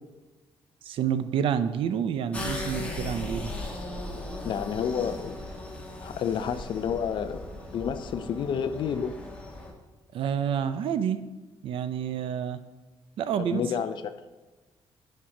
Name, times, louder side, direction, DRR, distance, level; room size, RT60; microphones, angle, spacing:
voice 1, 0.8-3.5 10.1-11.2 11.6-12.6 13.2-13.6, right 8 dB, 65° right, 11 dB, 0.6 m, -28 dB
sound 1, 2.3-9.7, left 1 dB, 10° left, 1.3 m, -37 dB
voice 2, 4.4-5.4 6.0-7.4 7.7-9.1 13.4-14.1, left 7 dB, 55° left, 11 dB, 0.6 m, -30 dB
10.5 x 5.6 x 4.9 m, 1.2 s
cardioid pair, 170°, 10 cm